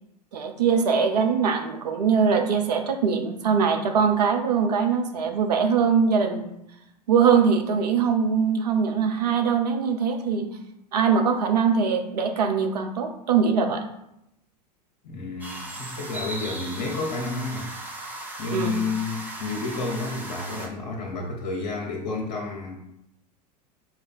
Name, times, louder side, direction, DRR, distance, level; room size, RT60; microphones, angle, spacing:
voice 1, 0.3-6.5 7.1-10.5 10.9-13.8 18.5-18.8, right 6 dB, 75° right, 5 dB, 0.7 m, -22 dB
voice 2, 15.0-17.7 18.4-22.8, left 3 dB, 60° left, 0 dB, 0.9 m, -30 dB
sound 1, 15.4-20.7, right 1 dB, 10° right, 0.9 m, -37 dB
4.1 x 2.5 x 4.3 m, 0.80 s
figure-of-eight pair, 85°, 21 cm